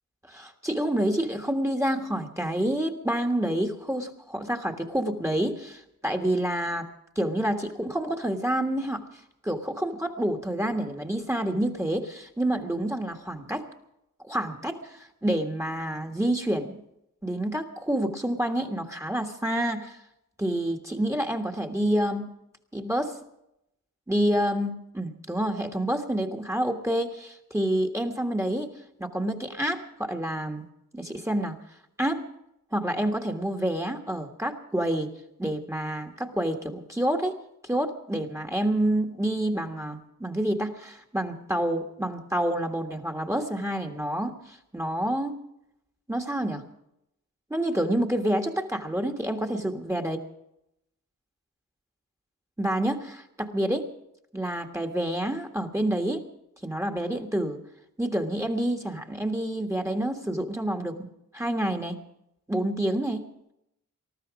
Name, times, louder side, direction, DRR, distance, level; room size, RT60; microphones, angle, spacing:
voice 1, 0.3-6.9 7.1-9.0 9.4-13.6 14.2-16.8 17.2-20.0 20.4-22.3 22.7-23.2 24.1-28.7 29.0-30.6 30.9-31.6 32.0-32.2 32.7-35.1 35.4-37.4 37.6-45.4 46.1-46.6 47.5-50.2 52.6-53.9 54.3-56.2 56.6-57.6 58.0-61.1 61.3-62.0 62.5-63.3, right 1 dB, 10° right, 5 dB, 1.5 m, -28 dB
20.0 x 13.5 x 5.1 m, 0.82 s
wide cardioid pair, 80°, 33 cm